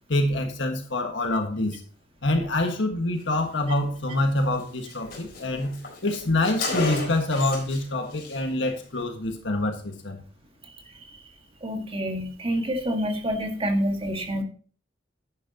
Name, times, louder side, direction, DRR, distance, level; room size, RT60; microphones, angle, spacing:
voice 1, 0.1-1.8 2.2-5.8 6.0-10.2, left 2 dB, 70° left, 4 dB, 1.6 m, -26 dB
Car, 4.2-4.3 4.6-4.7 4.9-7.8 8.1-8.4, left 3 dB, 50° left, 4.2 m, -33 dB
voice 2, 11.6-14.4, equal, 30° right, 4 dB, 1.7 m, -27 dB
10.5 x 10.0 x 2.9 m, 0.41 s
head